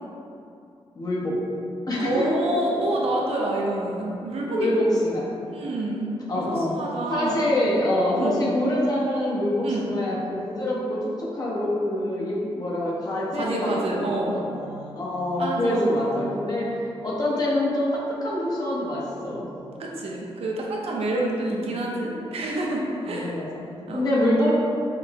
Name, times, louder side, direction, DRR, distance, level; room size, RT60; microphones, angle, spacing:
voice 1, 1.0-1.4 1.9-2.4 4.6-5.3 6.3-6.8 7.1-16.7 17.0-19.5 21.1-21.8 23.1-24.5, left 1 dB, 40° left, -6 dB, 0.7 m, -26 dB
voice 2, 2.0-4.9 5.5-6.4 6.7-7.4 8.1-8.4 9.6-9.8 13.3-14.3 15.4-16.1 19.8-23.3 23.9-24.0, right 1 dB, 75° right, -2 dB, 0.6 m, -27 dB
5.1 x 2.0 x 2.8 m, 2.6 s
wide cardioid pair, 135°, 10 cm